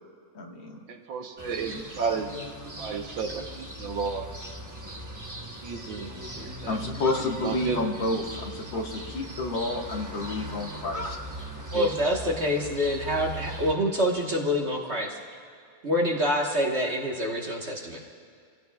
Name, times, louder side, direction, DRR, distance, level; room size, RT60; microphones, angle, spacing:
voice 1, 0.3-0.8 6.7-11.2 11.7-11.9, left 2 dB, 70° left, 0 dB, 2.3 m, -30 dB
voice 2, 0.9-2.3 2.8-4.3 5.6-6.1 6.4-6.8 7.4-7.8 8.7-8.8, right 5 dB, 70° right, 4 dB, 1.7 m, -32 dB
sound 1, 1.4-13.7, equal, 20° right, 0.5 m, -39 dB
voice 3, 11.7-15.2 15.8-18.0, equal, 35° right, -1 dB, 1.4 m, -26 dB
26.0 x 16.0 x 2.3 m, 2.3 s
omnidirectional pair, 2.2 m